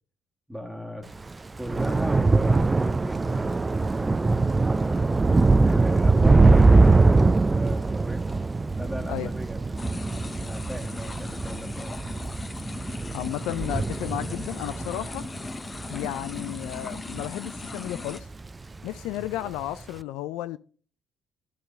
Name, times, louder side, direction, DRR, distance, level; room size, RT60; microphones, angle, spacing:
voice 1, 0.5-1.1 1.6-4.4 4.7-5.1 5.6-8.4 8.7-9.6 10.5-12.0 19.1-19.5, equal, 10° right, 1.5 m, -38 dB
Thunder / Rain, 1.1-17.7 18.1-18.5 18.8-19.0, right 3 dB, 25° right, 0.4 m, -22 dB
sound 1, 9.8-18.2, left 3 dB, 30° left, 0.7 m, -38 dB
voice 2, 13.1-15.3 15.9-18.3 18.8-20.6, left 14 dB, 75° left, 0.3 m, -33 dB
11.0 x 4.0 x 6.7 m
hypercardioid pair, 45°, 0 cm